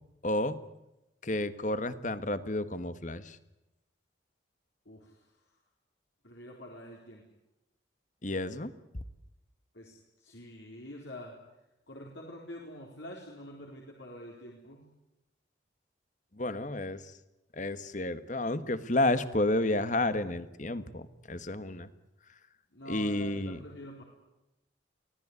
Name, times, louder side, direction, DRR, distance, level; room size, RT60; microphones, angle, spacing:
voice 1, 0.2-0.6 1.2-3.4 8.2-8.7 16.4-17.0 17.5-21.9 22.9-23.6, left 1 dB, 40° left, 13 dB, 1.4 m, -31 dB
voice 2, 4.9-5.3 6.2-7.2 9.7-11.3 11.9-14.8 22.7-24.0, left 1 dB, 70° left, -1 dB, 4.2 m, -46 dB
24.5 x 17.5 x 9.7 m, 0.95 s
head